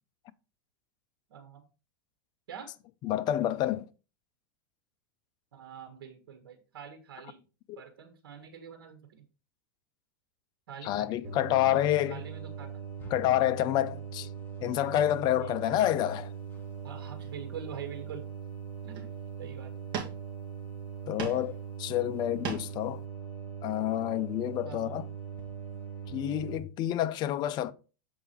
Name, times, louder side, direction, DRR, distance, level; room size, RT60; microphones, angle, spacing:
voice 1, 1.3-1.6 2.5-2.7 5.5-7.4 7.7-9.2 10.7-11.8 12.0-12.7 15.4-15.6 16.8-18.2 18.8-19.1 19.4-19.7 24.6-25.0, right 8 dB, 85° right, 1.5 m, -45 dB
voice 2, 3.0-3.9 10.8-12.2 13.1-14.3 14.6-16.3 21.1-23.0 23.6-25.0 26.1-27.7, left 13 dB, 35° left, 0.6 m, -28 dB
sound 1, 11.2-26.6, right 7 dB, 15° left, 1.7 m, -41 dB
sound 2, 16.5-16.7 17.2-17.9 18.4-18.5 18.8-19.3 19.9-20.6 20.9-21.5 21.9-22.9, right 7 dB, 40° right, 2.1 m, -39 dB
7.4 x 4.7 x 4.5 m
supercardioid pair, 135°, 12 cm